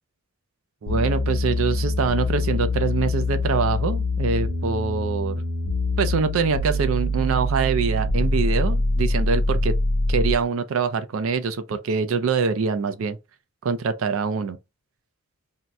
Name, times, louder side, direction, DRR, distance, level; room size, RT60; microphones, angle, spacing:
voice 1, 0.8-5.4 6.0-9.7 10.1-13.2 13.6-14.6, right 5 dB, 70° right, 0.4 m, -24 dB
sound 1, 0.9-10.5, left 2 dB, 65° left, 0.5 m, -24 dB
2.8 x 2.0 x 3.4 m
head